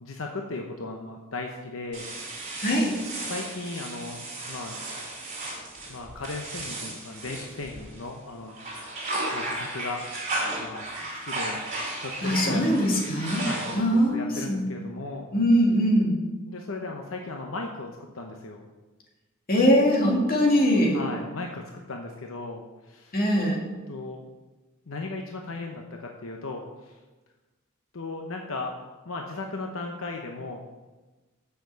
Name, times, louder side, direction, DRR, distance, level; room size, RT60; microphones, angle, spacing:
voice 1, 0.0-2.0 3.2-4.8 5.9-8.6 9.3-10.0 10.6-11.6 12.0-12.6 13.4-13.8 14.1-15.3 16.5-18.6 20.9-23.2 23.9-24.2 24.9-27.0 27.9-28.7 29.0-30.6, left 3 dB, 80° left, 2 dB, 0.9 m, -36 dB
sound 1, 1.9-8.1 8.5-14.1, right 2 dB, 40° right, 3.4 m, -34 dB
voice 2, 2.6-3.0 12.2-14.9 15.3-16.2 19.5-21.0 23.1-23.6, equal, 45° left, -1 dB, 2.1 m, -22 dB
6.9 x 6.5 x 6.9 m, 1.2 s
head